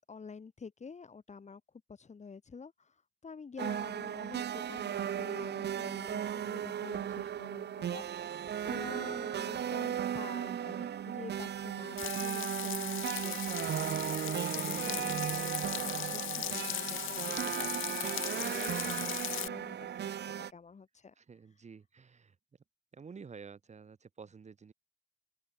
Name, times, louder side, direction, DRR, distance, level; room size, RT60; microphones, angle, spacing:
voice 1, 0.1-1.6 1.9-13.5 14.0-21.1, left 5 dB, 35° left, 6.1 m, -48 dB
sound 1, 3.6-20.5, right 9 dB, 55° right, 1.5 m, -36 dB
Frying (food), 12.0-19.5, left 15 dB, 85° left, 1.6 m, -38 dB
voice 2, 21.2-22.3 22.9-24.7, right 5 dB, 35° right, 1.8 m, -50 dB
open air
cardioid pair, 90°, 20 cm